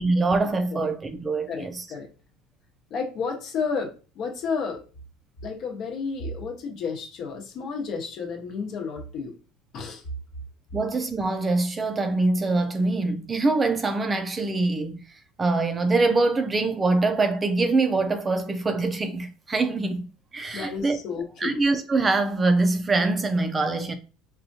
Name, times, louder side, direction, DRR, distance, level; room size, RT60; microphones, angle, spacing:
voice 1, 0.0-1.9 10.7-20.0 20.3-21.0 21.4-23.9, right 3 dB, 20° right, 0.4 m, -24 dB
voice 2, 1.5-2.1 2.9-4.8 5.4-9.3 9.7-10.0 20.5-21.6, left 5 dB, 50° left, 1.0 m, -31 dB
4.2 x 2.3 x 2.7 m
supercardioid pair, 125°, 0 cm